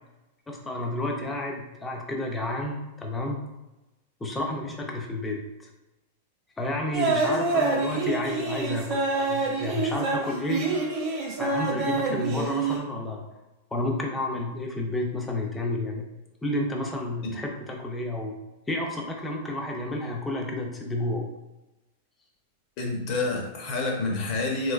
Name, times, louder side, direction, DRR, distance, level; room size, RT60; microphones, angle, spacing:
voice 1, 0.5-3.4 4.2-5.4 6.6-10.7 11.4-13.2 13.7-16.1 16.4-18.4 18.7-21.2, left 1 dB, 10° left, 0 dB, 0.5 m, -31 dB
sound 1, 6.9-12.8, right 3 dB, 30° right, 0.8 m, -27 dB
voice 2, 22.8-24.7, left 3 dB, 40° left, 1 dB, 0.7 m, -28 dB
3.1 x 2.9 x 2.4 m, 1.0 s
supercardioid pair, 155°, 0 cm